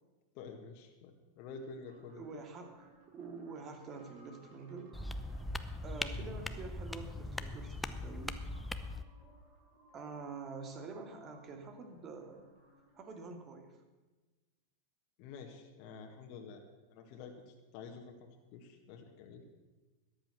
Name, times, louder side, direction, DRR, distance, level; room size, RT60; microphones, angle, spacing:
voice 1, 0.3-2.4 15.2-16.6 16.9-18.1 18.5-19.4, left 5 dB, 50° left, 3 dB, 1.8 m, -49 dB
sound 1, 1.8-13.2, right 1 dB, 55° right, 5.7 m, -63 dB
voice 2, 2.1-5.0 5.8-8.4 9.9-12.5 13.0-13.8, right 4 dB, 35° right, 5 dB, 2.3 m, -47 dB
sound 2, 4.9-9.0, left 2 dB, 5° left, 0.7 m, -40 dB
13.5 x 10.5 x 6.2 m, 1.2 s
hypercardioid pair, 95°, 0 cm